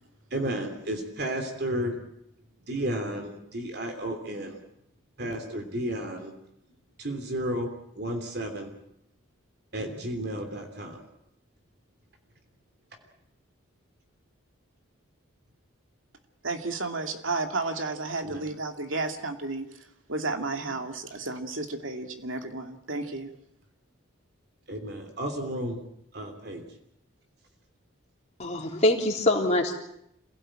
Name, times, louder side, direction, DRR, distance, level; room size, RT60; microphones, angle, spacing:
voice 1, 0.3-2.0 2.7-4.6 5.2-6.3 7.0-7.7 8.0-8.7 9.7-11.0 18.2-18.4 24.7-25.8 26.1-26.6, right 1 dB, 55° right, 4 dB, 3.2 m, -32 dB
voice 2, 16.4-19.7 20.1-23.3, right 3 dB, 80° right, 6 dB, 2.6 m, -32 dB
voice 3, 28.4-29.8, left 1 dB, 35° left, 0 dB, 3.6 m, -24 dB
27.0 x 17.5 x 8.9 m, 0.77 s
head